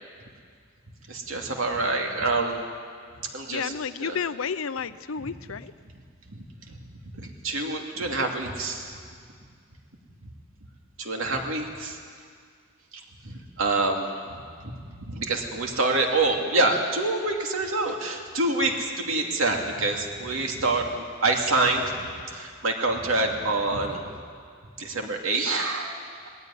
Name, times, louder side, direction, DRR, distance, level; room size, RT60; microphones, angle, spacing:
voice 1, 1.1-2.6 3.3-3.7 4.0-4.2 5.2-5.3 6.3-6.4 6.7-6.8 7.1-9.0 11.0-12.0 13.2-21.9 22.3-24.0 24.8-26.3, right 2 dB, 80° right, 2 dB, 2.6 m, -27 dB
voice 2, 3.5-5.7, left 6 dB, 80° left, 14 dB, 0.7 m, -31 dB
19.0 x 16.0 x 9.9 m, 2.1 s
head